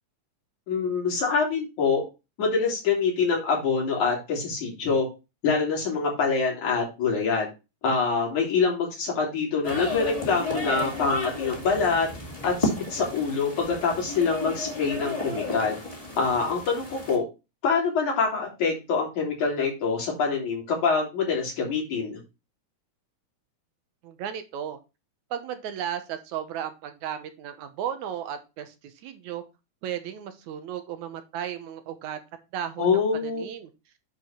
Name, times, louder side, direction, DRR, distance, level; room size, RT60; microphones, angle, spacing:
voice 1, 0.7-2.0 2.4-5.1 5.4-7.5 7.8-12.1 12.4-15.8 16.2-17.2 17.6-22.2 32.8-33.4, left 5 dB, 75° left, -2 dB, 4.7 m, -25 dB
sound 1, 9.6-17.2, left 2 dB, 15° left, 2.0 m, -33 dB
voice 2, 24.0-24.8 25.3-29.4 29.8-32.2 32.5-33.7, right 9 dB, 80° right, 9 dB, 2.3 m, -35 dB
9.6 x 4.8 x 4.4 m, 0.27 s
omnidirectional pair, 3.4 m